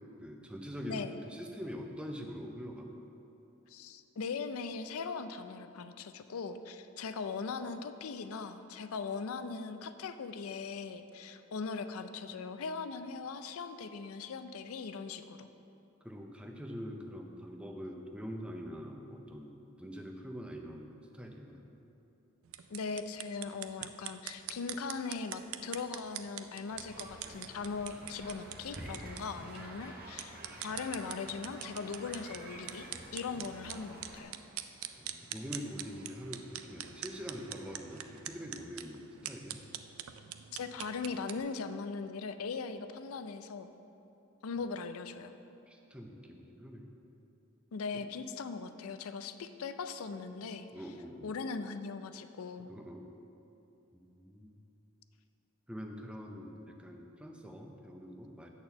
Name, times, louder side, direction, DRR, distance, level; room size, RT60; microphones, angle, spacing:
voice 1, 0.2-2.9 16.0-21.6 33.3-33.5 35.0-39.6 45.7-46.9 47.9-48.0 50.7-51.3 52.7-53.1 53.9-54.5 55.7-58.5, equal, 5° right, 2 dB, 0.5 m, -44 dB
voice 2, 0.9-1.2 3.7-15.5 22.7-34.3 40.5-43.7 44.4-45.3 47.7-50.9 51.2-52.7, left 5 dB, 80° left, 10 dB, 0.4 m, -40 dB
sound 1, 22.4-41.4, right 11 dB, 75° right, 0.4 m, -45 dB
sound 2, 26.7-34.2, right 1 dB, 45° right, 1.0 m, -49 dB
8.5 x 4.4 x 6.8 m, 2.9 s
head